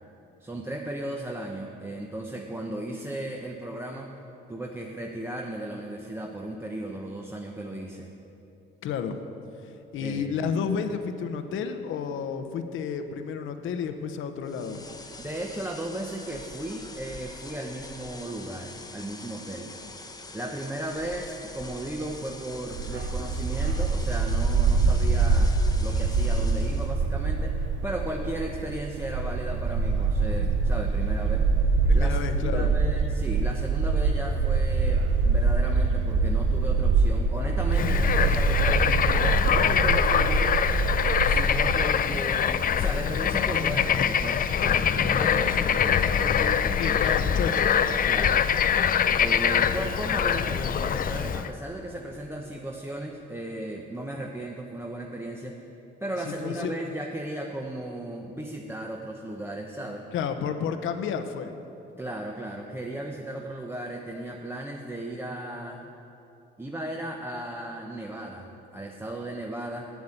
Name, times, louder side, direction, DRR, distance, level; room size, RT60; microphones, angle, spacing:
voice 1, 0.4-4.1 4.5-8.1 10.0-10.5 15.2-19.7 20.3-31.5 31.9-32.2 32.4-40.6 41.2-48.5 49.2-55.6 56.0-60.1 62.0-65.8 66.6-68.5 68.7-69.9, right 1 dB, 10° right, 1 dB, 0.8 m, -35 dB
voice 2, 8.8-9.2 9.9-14.8 31.8-32.7 46.8-47.7 56.2-56.7 60.1-61.5, left 6 dB, 80° left, 8 dB, 0.8 m, -31 dB
sound 1, 14.4-27.0, left 3 dB, 20° left, 1.0 m, -44 dB
Bark, 22.7-41.8, right 4 dB, 80° right, 0.7 m, -24 dB
Bird / Frog, 37.7-51.5, left 8 dB, 45° left, 0.5 m, -24 dB
8.4 x 7.9 x 8.8 m, 2.9 s
cardioid pair, 90°, 20 cm